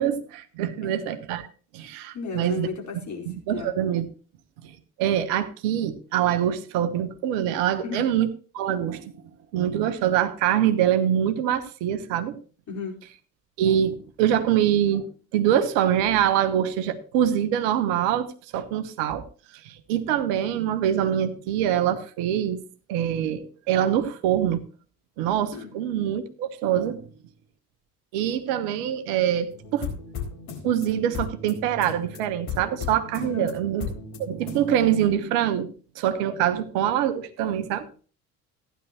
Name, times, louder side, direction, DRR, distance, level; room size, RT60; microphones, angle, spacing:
voice 1, 0.0-1.5 1.7-2.7 3.3-4.0 4.6-4.7 5.0-8.3 8.5-9.1 9.5-12.3 13.6-15.1 15.3-18.3 18.5-19.2 19.6-22.6 22.9-24.6 25.2-27.1 28.1-29.9 30.6-33.9 34.2-35.7 35.9-37.9, right 10 dB, 60° right, 11 dB, 1.2 m, -24 dB
voice 2, 0.8-1.1 2.1-3.8 7.8-8.0 12.7-13.0 25.5-25.7 33.2-33.5, left 5 dB, 40° left, 0 dB, 4.8 m, -34 dB
sound 1, 29.5-34.7, left 5 dB, 60° left, 4.3 m, -36 dB
15.0 x 10.0 x 3.1 m, 0.38 s
figure-of-eight pair, 50°, 45 cm